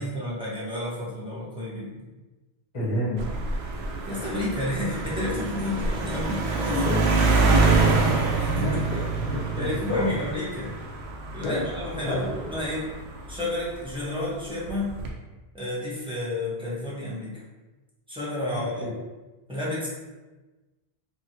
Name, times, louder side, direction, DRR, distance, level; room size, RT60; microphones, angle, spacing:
voice 1, 0.0-2.1 4.1-6.8 8.5-9.0 9.6-10.7 11.3-12.9 13.3-15.0 15.5-17.4 18.1-18.9 19.5-19.9, left 2 dB, 5° right, -9 dB, 0.8 m, -31 dB
voice 2, 2.7-3.2 6.7-7.0 7.4-10.2 11.4-11.6 12.0-12.6 18.8-18.9, left 1 dB, 35° left, -7 dB, 1.0 m, -29 dB
sound 1, 3.2-13.9 14.7-15.1, right 4 dB, 85° right, 0.8 m, -26 dB
2.9 x 2.6 x 2.7 m, 1.2 s
omnidirectional pair, 1.0 m